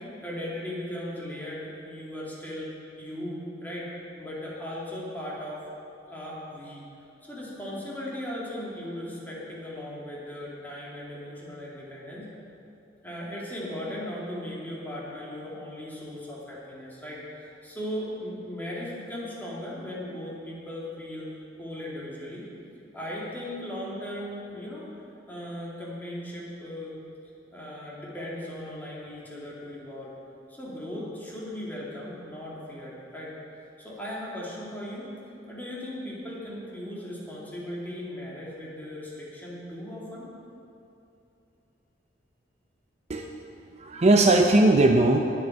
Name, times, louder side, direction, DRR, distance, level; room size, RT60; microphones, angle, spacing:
voice 1, 0.2-3.9 4.2-5.6 6.1-6.8 7.2-12.3 13.0-21.3 21.6-22.5 22.9-24.9 25.3-27.0 27.5-30.1 30.6-33.4 33.8-35.1 35.5-40.3, left 1 dB, 10° left, -6 dB, 2.5 m, -37 dB
voice 2, 43.1-43.4 43.7-45.2, right 2 dB, 35° right, 3 dB, 0.6 m, -19 dB
19.0 x 7.7 x 4.6 m, 2.9 s
head